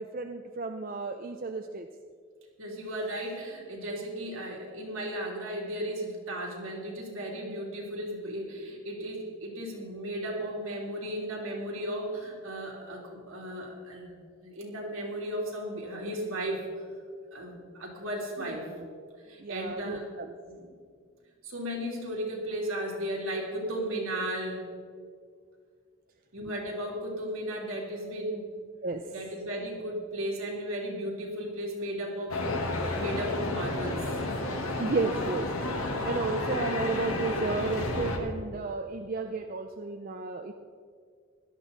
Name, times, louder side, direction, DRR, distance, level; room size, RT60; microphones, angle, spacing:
voice 1, 0.0-1.9 18.4-18.8 19.4-20.3 26.4-26.6 28.8-29.0 34.8-35.5 35.9-40.5, right 3 dB, 40° right, 5 dB, 0.5 m, -33 dB
voice 2, 2.6-14.1 14.4-16.6 17.3-18.7 19.3-20.1 20.5-20.7 21.4-24.7 26.3-28.5 29.1-34.1, right 1 dB, 75° right, -2 dB, 3.3 m, -35 dB
sound 1, 32.3-38.2, left 2 dB, 80° left, 1.7 m, -31 dB
17.0 x 12.0 x 4.1 m, 2.1 s
head